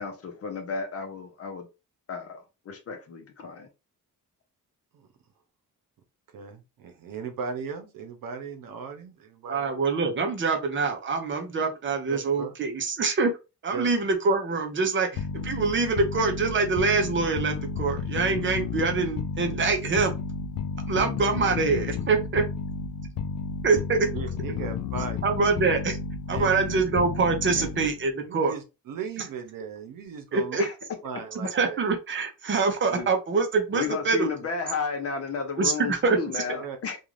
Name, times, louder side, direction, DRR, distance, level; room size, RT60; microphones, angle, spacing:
voice 1, 0.0-1.7 2.1-3.7 30.6-30.7 32.9-33.1 33.7-37.0, left 5 dB, 45° left, 0.7 m, -33 dB
voice 2, 6.3-9.7 12.1-12.6 13.7-13.9 18.3-18.4 24.1-25.2 26.3-26.8 27.5-27.9 28.2-30.6 31.0-31.8 36.6-36.8, right 5 dB, 85° right, 0.7 m, -37 dB
voice 3, 9.5-13.3 13.6-20.1 20.9-22.4 23.6-24.0 25.2-26.0 26.3-28.5 30.3-30.6 31.3-34.3 35.6-36.4, right 4 dB, 35° right, 0.6 m, -25 dB
sound 1, 15.2-28.1, left 6 dB, 85° left, 0.5 m, -32 dB
2.4 x 2.4 x 3.1 m
wide cardioid pair, 155°, 33 cm